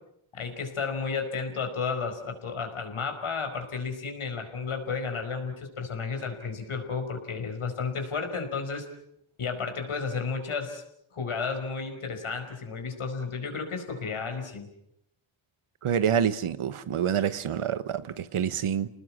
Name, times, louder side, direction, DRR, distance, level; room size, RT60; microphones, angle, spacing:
voice 1, 0.3-8.9 9.4-10.8 11.1-14.7, left 5 dB, 80° left, 5.1 m, -32 dB
voice 2, 15.8-18.9, right 8 dB, 85° right, 1.3 m, -27 dB
30.0 x 19.5 x 7.5 m
wide cardioid pair, 90°, 49 cm